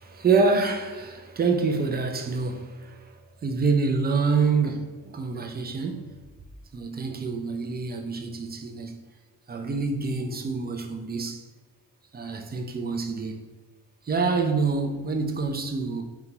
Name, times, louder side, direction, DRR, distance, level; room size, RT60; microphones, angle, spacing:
voice 1, 0.0-6.2 6.7-9.0 9.5-11.4 12.1-13.4 14.1-16.0, right 4 dB, 25° right, 0.4 m, -26 dB
2.6 x 2.3 x 2.9 m
supercardioid pair, 45°, 43 cm